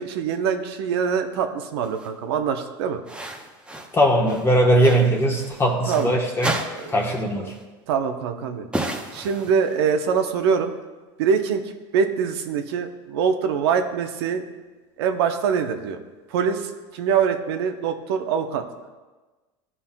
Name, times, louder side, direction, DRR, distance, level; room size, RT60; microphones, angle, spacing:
voice 1, 0.0-3.0 5.9-6.2 6.8-6.9 7.3-7.5 7.9-8.7 9.1-10.7 11.2-11.6 11.9-14.5 15.0-16.0 16.3-18.6, right 6 dB, 85° right, 6 dB, 0.8 m, -24 dB
sound 1, 1.8-2.1 3.1-4.0 4.3-6.1 6.4-7.2 7.5-7.6 8.7-9.9, right 1 dB, 10° right, 0.8 m, -32 dB
voice 2, 3.9-6.6 6.9-7.6, right 1 dB, 20° left, -1 dB, 1.1 m, -20 dB
14.5 x 5.6 x 2.2 m, 1.2 s
supercardioid pair, 115°, 13 cm